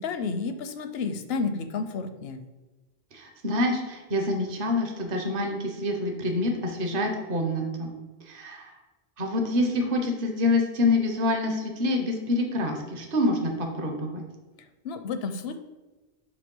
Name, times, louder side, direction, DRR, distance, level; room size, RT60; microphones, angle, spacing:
voice 1, 0.0-2.4 14.8-15.6, left 4 dB, 75° left, 9 dB, 0.8 m, -31 dB
voice 2, 3.1-7.9 8.3-8.7 9.2-14.2, left 2 dB, 55° right, 3 dB, 1.1 m, -26 dB
6.6 x 3.2 x 5.3 m, 1.2 s
omnidirectional pair, 1.1 m